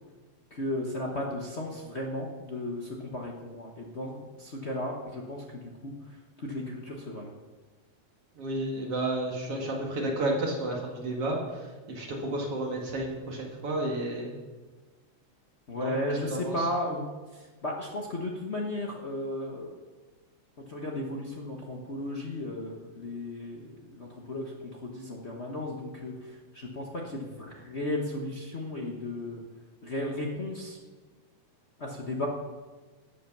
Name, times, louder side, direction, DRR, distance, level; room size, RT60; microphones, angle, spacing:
voice 1, 0.5-5.9 6.4-7.3 15.7-17.1 17.3-19.8 20.7-24.5 24.8-29.4 29.8-30.8 31.8-32.3, left 1 dB, 65° left, -1 dB, 0.6 m, -35 dB
voice 2, 8.4-14.4 15.8-16.0 16.3-16.7, right 1 dB, 55° right, 0 dB, 2.8 m, -32 dB
13.0 x 8.7 x 6.1 m, 1.3 s
omnidirectional pair, 3.4 m